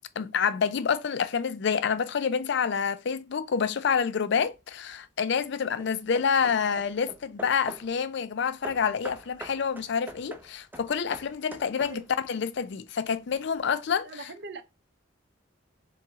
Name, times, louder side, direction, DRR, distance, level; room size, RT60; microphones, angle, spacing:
voice 1, 0.2-14.3, left 6 dB, 60° left, 0.4 m, -28 dB
Hammer / Wood, 4.4-4.9 5.5-8.0 8.6-12.3, right 1 dB, 10° right, 0.4 m, -45 dB
voice 2, 14.0-14.6, right 3 dB, 55° right, 0.6 m, -41 dB
3.8 x 3.1 x 3.5 m
head